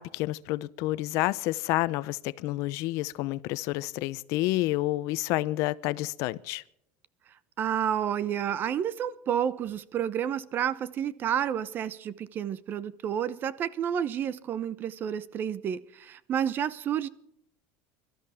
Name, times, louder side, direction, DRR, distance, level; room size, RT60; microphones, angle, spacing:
voice 1, 0.0-6.6, left 18 dB, 60° left, 0.7 m, -29 dB
voice 2, 7.6-17.1, right 9 dB, 35° right, 0.8 m, -30 dB
24.0 x 13.0 x 3.6 m
supercardioid pair, 135°, 6 cm